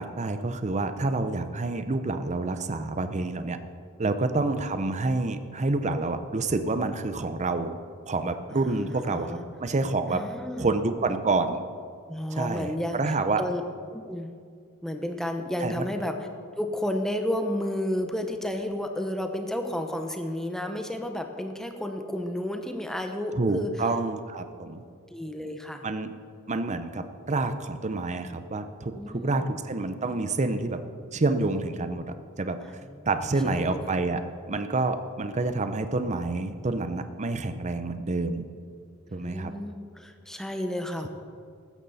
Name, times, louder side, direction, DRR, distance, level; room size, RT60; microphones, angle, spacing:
voice 1, 0.0-3.6 4.0-7.7 8.1-10.2 10.6-11.6 12.3-13.4 15.6-15.8 23.3-24.8 25.8-26.1 26.5-30.8 31.1-32.1 32.4-32.6 33.1-38.5 39.1-39.5, right 3 dB, 35° right, 10 dB, 0.7 m, -28 dB
voice 2, 8.5-9.4 10.1-10.7 12.1-13.6 13.9-14.3 14.8-16.2 16.6-23.7 25.1-25.8 28.9-29.5 32.8-33.1 33.5-34.0 39.1-41.1, left 1 dB, ahead, 5 dB, 0.8 m, -32 dB
15.0 x 13.0 x 4.2 m, 2.2 s
head